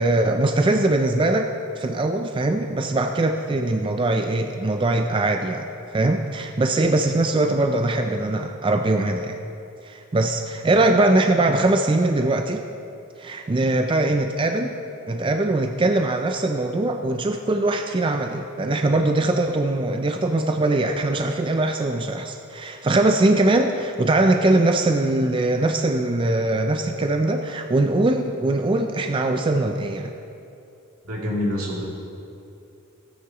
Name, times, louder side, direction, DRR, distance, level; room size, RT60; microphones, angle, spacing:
voice 1, 0.0-5.7 5.9-9.4 9.8-12.6 13.2-14.7 15.1-30.1, right 2 dB, 25° right, 5 dB, 0.3 m, -21 dB
voice 2, 31.1-31.8, left 1 dB, 85° right, -4 dB, 2.8 m, -26 dB
16.0 x 9.6 x 3.0 m, 2.7 s
head